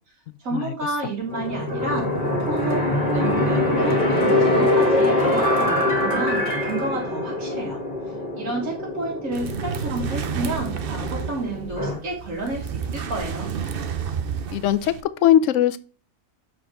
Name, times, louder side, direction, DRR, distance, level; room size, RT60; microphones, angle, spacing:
voice 1, 0.4-2.1 2.4-7.8 8.1-13.5, right 2 dB, 70° right, -5 dB, 2.2 m, -30 dB
sound 1, 1.3-12.0, left 1 dB, 30° left, 1.8 m, -23 dB
sound 2, 9.3-15.0, right 7 dB, 50° right, 0.8 m, -30 dB
voice 2, 14.5-15.8, left 11 dB, 70° left, 15 dB, 0.9 m, -20 dB
7.7 x 4.3 x 4.6 m, 0.39 s
omnidirectional pair, 1.5 m